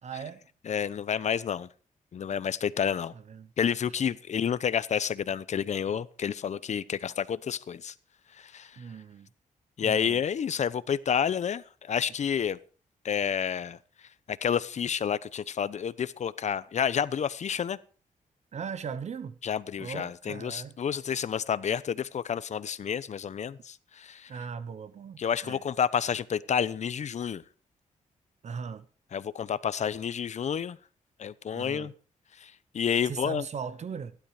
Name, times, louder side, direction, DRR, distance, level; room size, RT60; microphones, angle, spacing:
voice 1, 0.0-0.5 3.1-3.5 3.9-4.0 8.8-9.3 9.8-10.2 18.5-19.4 19.8-20.8 24.3-25.6 28.4-28.9 31.5-31.9 33.0-34.2, right 6 dB, 55° right, 1.0 m, -39 dB
voice 2, 0.7-1.7 2.1-3.1 3.6-7.9 8.4-8.7 9.8-12.6 13.0-13.8 14.3-17.8 19.4-24.3 25.2-27.4 29.1-30.8 31.2-31.9 32.4-33.4, left 8 dB, 55° left, 0.9 m, -30 dB
15.5 x 11.5 x 4.9 m
cardioid pair, 105°, 14 cm